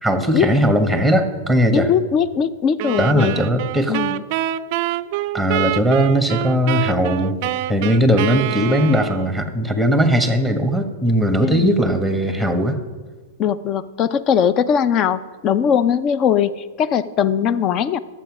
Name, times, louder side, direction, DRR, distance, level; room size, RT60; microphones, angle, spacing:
voice 1, 0.0-1.9 3.0-4.0 5.3-7.4 7.7-12.8, equal, 5° left, 6 dB, 1.3 m, -18 dB
voice 2, 1.7-3.4 3.9-4.2 11.4-11.7 13.4-16.5 16.8-18.0, left 8 dB, 35° left, 15 dB, 0.5 m, -20 dB
sound 1, 2.8-9.4, right 14 dB, 50° right, 0.4 m, -25 dB
11.5 x 7.8 x 6.1 m, 1.4 s
hypercardioid pair, 120°, 0 cm